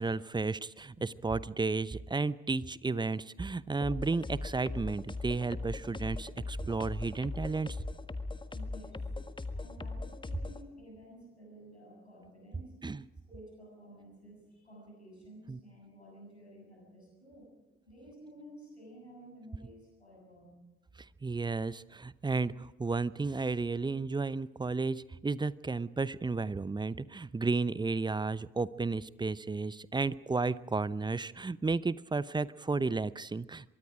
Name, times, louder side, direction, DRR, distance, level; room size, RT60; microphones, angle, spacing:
voice 1, 0.0-7.8 12.8-13.0 15.5-15.6 21.2-33.7, right 3 dB, 15° right, 18 dB, 0.8 m, -33 dB
sound 1, 3.8-10.6, left 3 dB, 15° left, 1.6 m, -39 dB
voice 2, 8.5-9.0 9.5-12.8 13.3-17.5 17.9-20.5, equal, 90° left, -1 dB, 7.5 m, -53 dB
24.0 x 23.5 x 5.0 m, 1.0 s
figure-of-eight pair, 50°, 32 cm